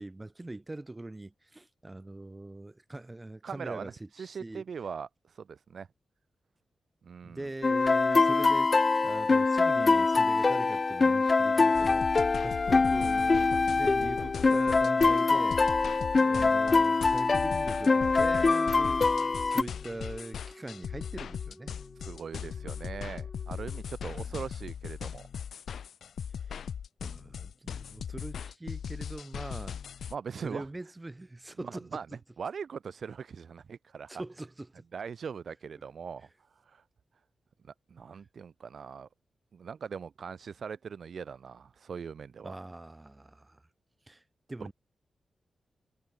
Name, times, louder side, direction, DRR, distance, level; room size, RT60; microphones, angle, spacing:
voice 1, 0.0-4.6 7.2-8.7 9.0-15.6 16.2-19.1 19.4-21.7 24.0-24.3 26.5-26.6 27.0-29.8 30.4-32.0 34.1-34.8 42.4-43.6 44.1-44.2 44.5-44.7, right 2 dB, 20° right, 1.2 m, -42 dB
voice 2, 3.4-5.9 7.0-7.5 22.0-25.3 30.1-30.7 31.6-32.1 32.4-34.1 34.9-36.3 36.7-36.8 37.9-39.1 39.5-42.6 44.6-44.7, right 6 dB, 70° right, 1.1 m, -41 dB
sound 1, 7.6-19.6, left 4 dB, 40° left, 0.4 m, -24 dB
sound 2, 11.7-30.2, left 7 dB, 90° left, 0.5 m, -39 dB
Wind instrument woodwind instrument, 17.9-23.9, left 1 dB, 10° left, 2.8 m, -53 dB
wide cardioid pair, 100°, 0 cm